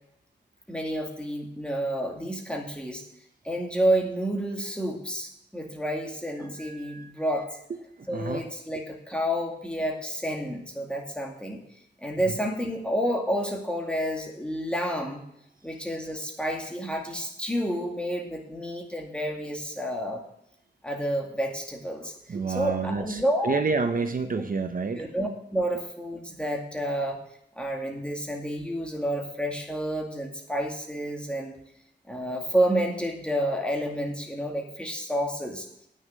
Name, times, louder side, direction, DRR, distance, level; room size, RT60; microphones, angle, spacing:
voice 1, 0.7-3.0 3.4-7.5 8.1-11.6 12.0-15.3 15.6-20.2 20.8-22.1 22.5-23.6 24.3-24.4 24.9-27.2 27.6-31.6 32.1-35.7, equal, 5° left, 1 dB, 2.2 m, -29 dB
voice 2, 6.6-7.1 7.7-8.5 8.7-8.8 22.3-25.1, right 4 dB, 50° right, 8 dB, 0.8 m, -29 dB
9.3 x 6.6 x 7.6 m, 0.77 s
wide cardioid pair, 100°, 18 cm